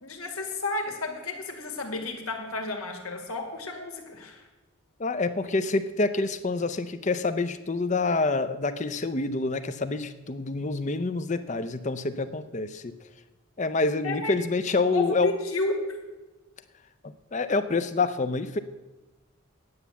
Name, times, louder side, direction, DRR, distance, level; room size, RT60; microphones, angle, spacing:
voice 1, 0.0-4.4 14.0-14.4 14.9-15.8, left 2 dB, 85° left, 4 dB, 1.9 m, -32 dB
voice 2, 5.0-12.9 13.6-15.3 17.3-18.6, left 3 dB, 35° left, 11 dB, 0.5 m, -27 dB
9.5 x 8.2 x 6.9 m, 1.1 s
head